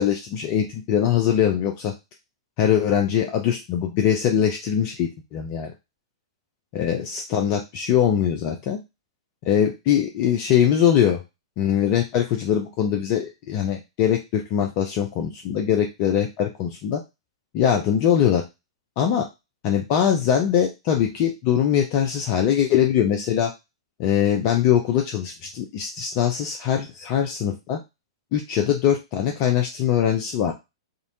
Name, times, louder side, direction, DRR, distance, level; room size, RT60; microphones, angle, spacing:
voice 1, 0.0-1.9 2.6-5.7 6.7-8.8 9.5-11.2 11.6-17.0 17.5-18.4 19.0-19.3 19.6-23.5 24.0-27.8 28.3-30.5, left 9 dB, 35° left, 3 dB, 0.4 m, -22 dB
2.5 x 2.1 x 2.6 m, 0.24 s
figure-of-eight pair, 105°, 3 cm